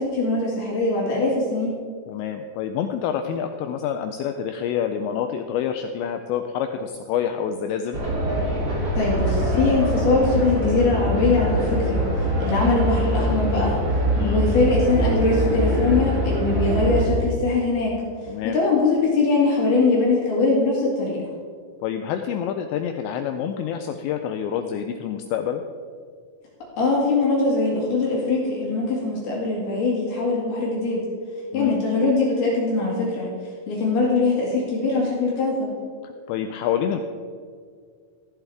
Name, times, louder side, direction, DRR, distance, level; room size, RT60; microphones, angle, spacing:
voice 1, 0.0-1.8 9.0-12.0 12.4-13.7 14.2-18.0 18.4-21.2 26.8-31.0 31.5-33.3 33.7-35.7, left 3 dB, 55° left, -4 dB, 3.7 m, -22 dB
voice 2, 2.1-8.0 14.2-14.4 18.3-18.6 21.8-25.6 31.5-31.8 36.0-37.0, left 8 dB, 90° left, 6 dB, 2.5 m, -27 dB
sound 1, 7.9-17.0, equal, 30° right, 3.2 m, -23 dB
15.5 x 11.5 x 3.5 m, 2.1 s
omnidirectional pair, 5.7 m